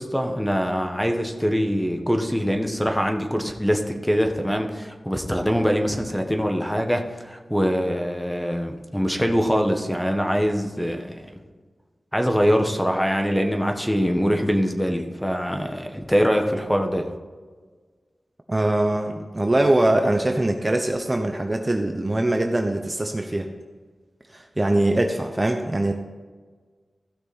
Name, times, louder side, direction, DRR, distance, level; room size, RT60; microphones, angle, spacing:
voice 1, 0.0-11.3 12.1-17.1, equal, 5° left, 4 dB, 1.4 m, -23 dB
voice 2, 18.5-23.5 24.3-25.9, right 1 dB, 25° right, 4 dB, 0.9 m, -22 dB
15.5 x 6.2 x 4.3 m, 1.5 s
wide cardioid pair, 80°, 0 cm